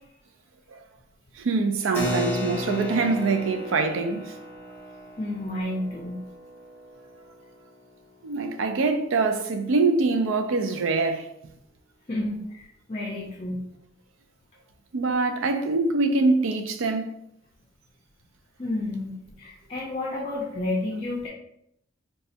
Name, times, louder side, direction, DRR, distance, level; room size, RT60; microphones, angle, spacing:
voice 1, 1.4-4.4 8.2-11.3 14.9-17.1, right 3 dB, 85° right, 0.4 m, -24 dB
Keyboard (musical), 1.9-8.0, left 1 dB, 10° left, 0.8 m, -34 dB
voice 2, 5.2-6.3 12.1-13.7 18.6-21.3, left 1 dB, 30° left, 0.5 m, -31 dB
4.0 x 2.3 x 2.7 m
head